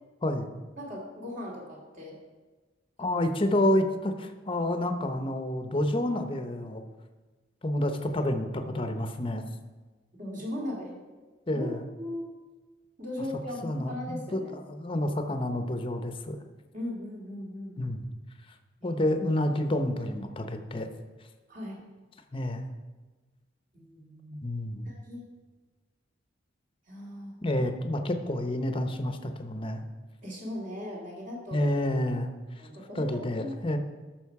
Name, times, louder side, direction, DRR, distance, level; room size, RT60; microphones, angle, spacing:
voice 1, 0.8-2.1 3.0-3.2 10.1-11.0 11.5-11.7 12.0-12.3 13.0-14.5 16.7-17.8 18.8-19.0 21.5-21.8 23.7-24.4 24.8-25.2 26.9-27.4 30.2-31.7 32.6-33.6, left 1 dB, 45° right, -3 dB, 2.6 m, -38 dB
voice 2, 3.0-6.8 7.6-9.4 11.5-11.8 13.6-14.4 14.7-16.4 17.8-18.0 18.8-20.9 22.3-22.7 24.4-24.9 27.4-29.8 31.5-32.3 32.9-33.8, left 1 dB, 25° left, 7 dB, 0.8 m, -29 dB
13.0 x 6.2 x 4.7 m, 1.3 s
head